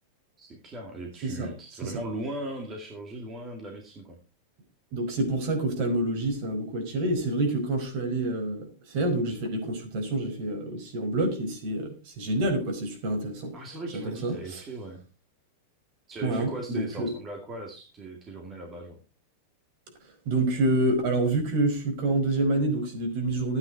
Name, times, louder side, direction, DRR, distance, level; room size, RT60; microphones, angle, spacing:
voice 1, 0.4-4.2 13.5-15.0 16.1-18.9, right 2 dB, 15° right, 2.3 m, -38 dB
voice 2, 1.2-1.5 1.8-1.9 4.9-13.5 13.9-14.6 16.2-17.1 20.2-23.6, right 2 dB, 45° right, 5.1 m, -27 dB
13.5 x 9.6 x 4.7 m
supercardioid pair, 175°, 0 cm